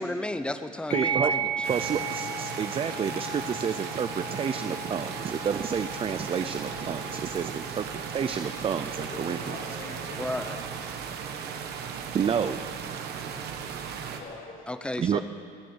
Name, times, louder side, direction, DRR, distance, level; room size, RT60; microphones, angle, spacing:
voice 1, 0.0-1.7 10.2-10.6 14.7-15.2, left 1 dB, 5° left, 10 dB, 0.7 m, -33 dB
sound 1, 0.9-9.9, right 3 dB, 80° left, 3.5 m, -36 dB
voice 2, 0.9-1.3 1.7-7.9 8.1-9.6 12.1-12.6 15.0-15.2, right 7 dB, 35° right, 10 dB, 0.5 m, -29 dB
sound 2, 1.6-14.2, right 7 dB, 75° right, 1.4 m, -37 dB
sound 3, 1.7-14.2, right 11 dB, 90° right, 1.3 m, -48 dB
voice 3, 9.0-10.7 14.1-14.7, left 2 dB, 50° left, -2 dB, 3.7 m, -43 dB
19.5 x 7.5 x 8.1 m, 2.4 s
cardioid pair, 110°, 17 cm